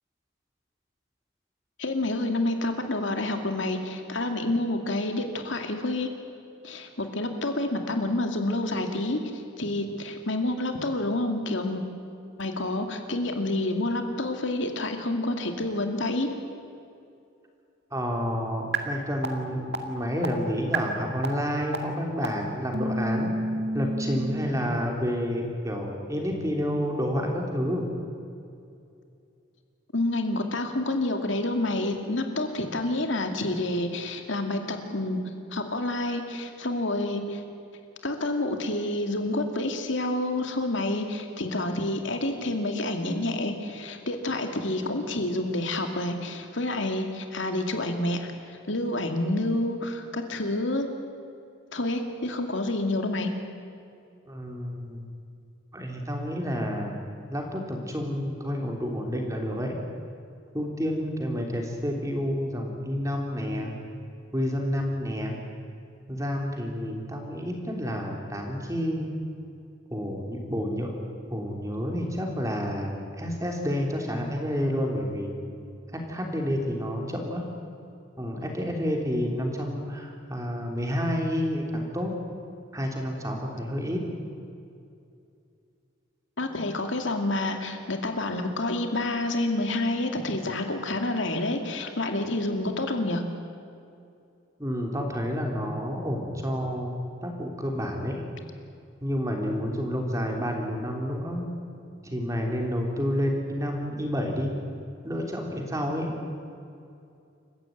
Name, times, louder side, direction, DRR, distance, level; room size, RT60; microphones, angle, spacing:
voice 1, 1.8-6.1 6.6-9.2 9.6-11.8 12.4-16.3 29.9-35.2 35.5-37.4 38.0-50.9 51.7-53.3 86.4-93.2, left 2 dB, 70° left, 5 dB, 2.3 m, -28 dB
voice 2, 17.9-23.3 23.7-27.9 54.3-55.1 55.7-59.7 60.5-63.7 64.3-65.4 66.1-69.1 69.9-70.9 71.3-75.3 75.9-77.4 78.2-82.1 82.7-84.0 94.6-96.9 97.2-98.2 99.0-101.5 102.0-104.5 105.0-106.1, equal, 15° right, 1 dB, 3.3 m, -29 dB
sound 1, 18.7-18.8 19.2-19.3 19.7-19.8 20.2-20.3 20.7-20.8 21.2-21.3 21.7-21.8 22.2-22.3 22.7-24.5, right 2 dB, 55° right, 2.2 m, -28 dB
28.5 x 15.0 x 9.2 m, 2.5 s
head